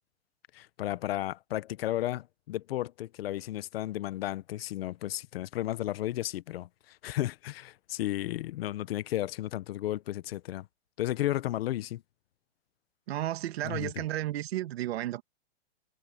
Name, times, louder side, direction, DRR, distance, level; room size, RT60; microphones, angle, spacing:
voice 1, 0.5-10.7 11.0-12.0 13.6-13.9, left 14 dB, 60° left, 1.1 m, -33 dB
voice 2, 13.1-15.2, right 14 dB, 60° right, 2.1 m, -33 dB
hypercardioid pair, 145°, 34 cm